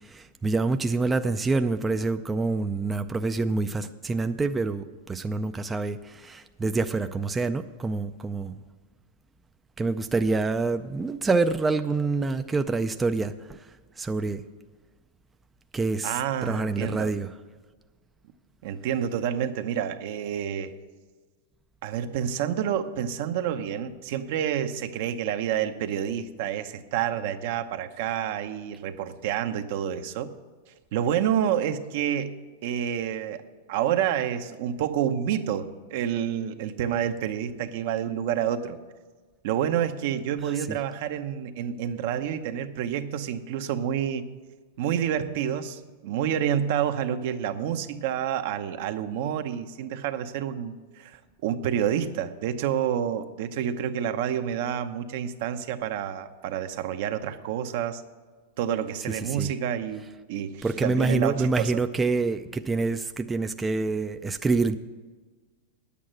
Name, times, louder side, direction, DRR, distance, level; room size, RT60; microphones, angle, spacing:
voice 1, 0.1-8.5 9.8-13.3 14.0-14.4 15.7-16.1 16.4-17.3 59.4-59.5 60.6-64.8, right 3 dB, 15° right, 8 dB, 0.4 m, -26 dB
voice 2, 16.0-17.1 18.6-20.7 21.8-30.3 30.9-33.4 33.7-38.8 39.4-44.2 44.8-58.0 58.6-61.8, right 9 dB, 60° right, 9 dB, 0.8 m, -28 dB
9.4 x 8.4 x 7.5 m, 1.4 s
hypercardioid pair, 125°, 0 cm